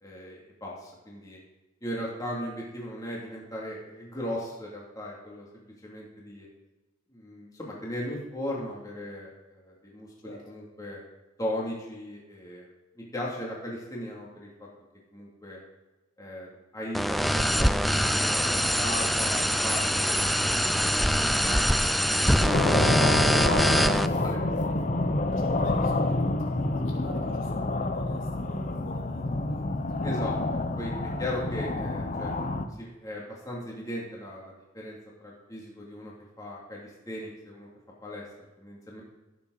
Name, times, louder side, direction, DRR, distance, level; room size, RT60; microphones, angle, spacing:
voice 1, 0.0-1.4 1.8-5.5 5.8-6.5 7.1-11.0 11.4-12.7 13.0-14.5 15.1-15.6 16.2-16.5 16.7-20.9 21.2-22.1 24.2-24.4 24.7-24.9 30.0-32.3 32.8-37.7 38.0-38.3 38.6-39.0, left 1 dB, 20° left, -4 dB, 2.5 m, -37 dB
sound 1, 16.9-24.1, equal, ahead, 0.3 m, -24 dB
sound 2, 22.4-32.7, left 2 dB, 40° left, 0.8 m, -28 dB
voice 2, 23.8-24.5 25.3-29.7 30.0-30.2, equal, 75° left, -2 dB, 3.1 m, -45 dB
16.5 x 7.4 x 4.0 m, 1.1 s
head